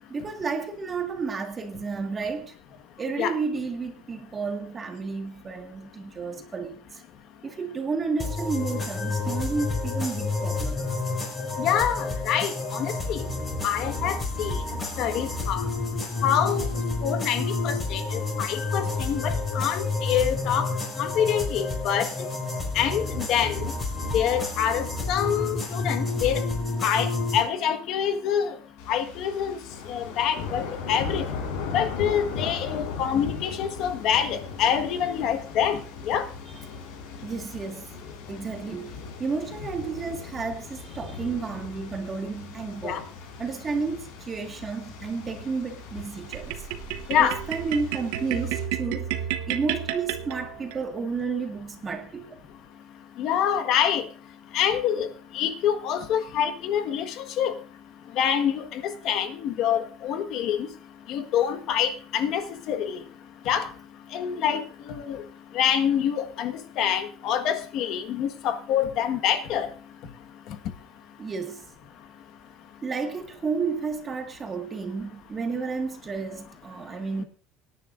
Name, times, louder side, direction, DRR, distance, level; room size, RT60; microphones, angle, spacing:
voice 1, 0.1-2.6 3.0-7.0 7.4-10.8 37.2-37.9 38.3-43.1 43.4-46.5 47.2-49.1 49.5-52.4 71.2-71.7 72.8-77.2, right 4 dB, 20° right, 1.9 m, -31 dB
sound 1, 8.2-27.4, left 3 dB, 20° left, 5.6 m, -30 dB
voice 2, 11.6-13.2 13.6-14.6 15.0-15.6 16.2-16.7 17.0-20.7 21.0-22.1 22.7-23.7 24.1-26.4 26.8-28.5 28.9-29.6 29.9-31.2 31.7-35.8 36.1-36.3 42.8-43.0 47.1-47.4 53.2-54.0 54.5-55.1 55.3-57.5 58.2-60.6 61.1-63.0 63.5-63.7 64.1-64.6 65.0-65.2 65.5-69.7, left 9 dB, 50° left, 1.5 m, -26 dB
sound 2, 28.8-48.6, left 5 dB, 85° left, 5.0 m, -38 dB
sound 3, 46.3-50.8, right 10 dB, 85° right, 1.0 m, -31 dB
24.5 x 10.0 x 2.6 m
cardioid pair, 160°, 0 cm